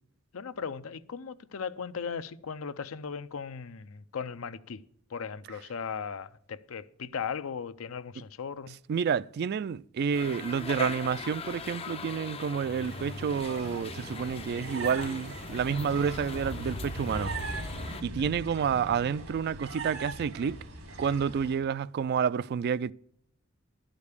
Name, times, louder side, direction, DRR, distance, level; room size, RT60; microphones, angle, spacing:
voice 1, 0.3-4.8 5.1-8.8, left 6 dB, 80° left, 0.6 m, -37 dB
voice 2, 8.9-17.3 18.0-20.6 21.0-22.9, right 7 dB, 50° right, 0.3 m, -29 dB
sound 1, 10.1-18.0, left 5 dB, 30° left, 0.4 m, -41 dB
sound 2, 12.8-21.6, right 2 dB, 80° right, 2.1 m, -39 dB
11.5 x 5.2 x 8.2 m
head